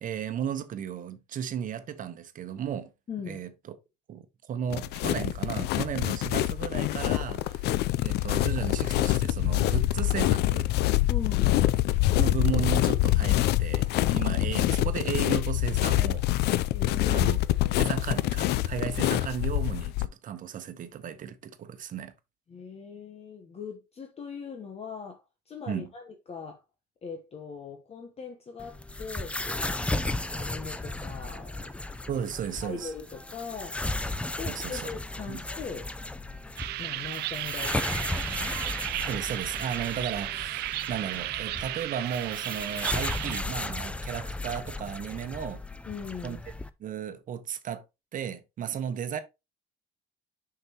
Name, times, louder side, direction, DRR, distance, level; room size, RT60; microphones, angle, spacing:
voice 1, 0.0-2.9 3.3-3.8 4.1-7.8 8.0-10.7 12.2-16.6 17.1-17.4 17.8-22.1 25.7-25.9 32.1-32.9 34.5-34.9 35.3-35.4 39.1-45.6 46.2-46.4 46.8-47.8 48.1-49.2, right 8 dB, 50° right, 1.0 m, -34 dB
voice 2, 3.1-3.4 11.1-11.6 16.7-17.9 22.5-26.6 27.0-31.8 32.6-33.8 34.4-35.9 36.8-38.6 45.8-46.4, left 6 dB, 35° left, 1.1 m, -41 dB
sound 1, 4.7-20.1, left 15 dB, 75° left, 0.5 m, -25 dB
sound 2, 28.6-46.7, left 2 dB, 5° left, 0.5 m, -35 dB
sound 3, 36.6-43.4, right 16 dB, 75° right, 0.5 m, -34 dB
6.6 x 6.0 x 2.9 m
cardioid pair, 110°, 17 cm